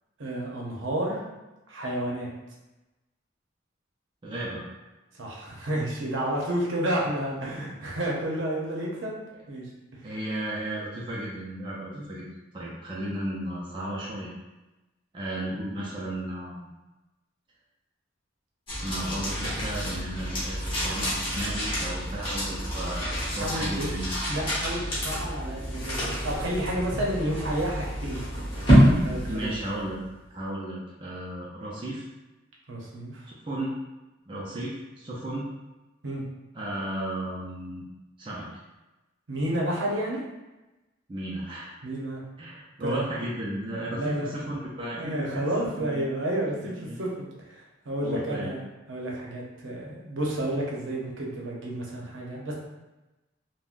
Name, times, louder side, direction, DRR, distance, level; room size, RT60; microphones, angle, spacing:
voice 1, 0.2-1.2 1.7-2.3 5.2-9.2 9.5-9.6 9.9-10.0 11.9-12.1 23.2-23.9 24.3-29.5 32.7-33.3 36.0-36.2 39.3-40.2 41.8-42.2 42.8-43.0 43.9-44.3 44.9-52.5, right 1 dB, 75° right, -3 dB, 0.7 m, -31 dB
voice 2, 4.2-4.6 10.0-12.3 12.5-14.3 15.1-16.7 18.8-24.2 29.3-30.0 30.3-32.0 33.5-33.7 34.3-35.5 36.5-37.8 38.2-38.5 41.1-41.7 42.4-45.5 45.7-46.0 46.5-47.0 48.0-48.5, right 1 dB, 25° right, -6 dB, 0.4 m, -34 dB
sound 1, 18.7-30.0, equal, 25° left, 1.1 m, -27 dB
3.5 x 2.1 x 2.5 m, 1.0 s
head